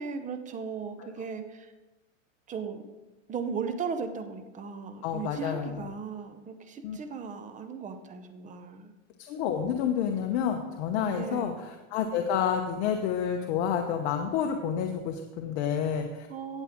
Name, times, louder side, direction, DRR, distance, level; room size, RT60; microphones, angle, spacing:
voice 1, 0.0-1.4 2.5-2.8 3.3-8.9 11.1-11.6 16.3-16.6, right 5 dB, 20° right, 8 dB, 0.8 m, -36 dB
voice 2, 5.0-5.9 6.8-7.0 9.3-16.3, left 8 dB, 50° left, 4 dB, 1.0 m, -29 dB
17.0 x 7.3 x 3.7 m, 1.1 s
supercardioid pair, 140°, 40 cm